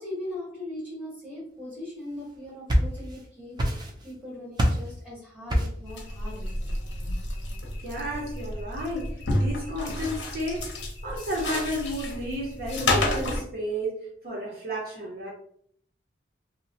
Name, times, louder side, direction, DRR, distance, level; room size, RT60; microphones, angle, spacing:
voice 1, 0.0-6.5, left 1 dB, 5° right, -8 dB, 1.3 m, -39 dB
sound 1, 2.3-3.2 3.6-4.2 4.6-4.9 5.5-5.9, equal, 25° right, 0.4 m, -25 dB
sound 2, 5.9-13.4, left 2 dB, 80° left, 0.6 m, -30 dB
voice 2, 7.8-10.7 11.0-14.0 14.2-15.3, equal, 55° right, -5 dB, 0.7 m, -32 dB
2.8 x 2.0 x 2.7 m, 0.62 s
head